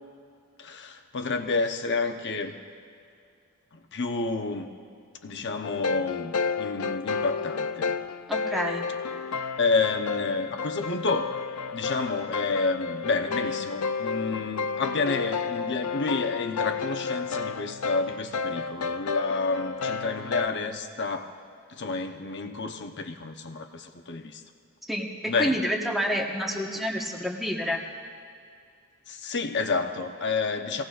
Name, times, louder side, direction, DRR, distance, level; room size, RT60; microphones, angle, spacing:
voice 1, 0.6-2.5 3.7-4.7 5.2-7.9 9.6-11.3 11.7-21.3 21.7-24.4 25.3-25.6 29.1-30.8, left 4 dB, 55° left, 6 dB, 0.9 m, -29 dB
sound 1, 5.6-20.5, left 5 dB, 70° left, 0.5 m, -31 dB
voice 2, 8.3-8.9 24.9-27.8, equal, ahead, 0 dB, 1.3 m, -29 dB
24.5 x 17.5 x 2.5 m, 2.4 s
head